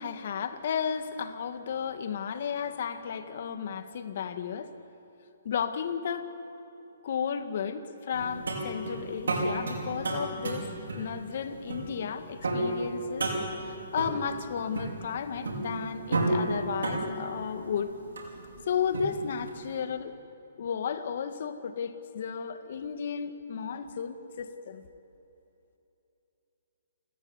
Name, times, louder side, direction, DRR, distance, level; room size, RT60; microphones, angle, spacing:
voice 1, 0.0-4.7 5.4-6.3 7.0-10.7 10.9-13.3 13.7-17.9 18.7-20.1 20.6-24.8, left 7 dB, 55° left, 9 dB, 1.9 m, -33 dB
sound 1, 8.1-19.7, right 2 dB, 85° right, 5.3 m, -33 dB
30.0 x 15.0 x 9.8 m, 2.9 s
hypercardioid pair, 150°, 0 cm